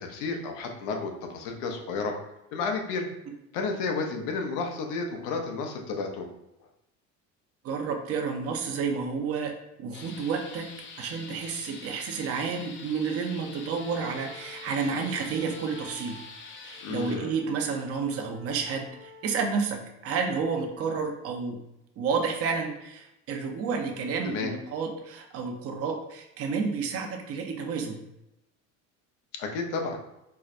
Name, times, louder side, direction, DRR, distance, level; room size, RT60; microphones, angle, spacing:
voice 1, 0.0-2.1 2.5-3.1 3.5-6.3 16.8-17.4 24.2-24.5 29.3-30.0, left 4 dB, 80° left, 3 dB, 0.7 m, -31 dB
voice 2, 7.6-9.5 9.8-10.7 11.0-16.2 16.5-21.6 22.0-28.0, right 5 dB, 45° right, 2 dB, 0.6 m, -30 dB
sound 1, 9.9-17.2, left 4 dB, 35° left, 0.5 m, -45 dB
Wind instrument woodwind instrument, 13.7-19.6, left 2 dB, 70° right, 0.9 m, -50 dB
4.5 x 2.1 x 2.5 m, 0.88 s
supercardioid pair, 105°, 34 cm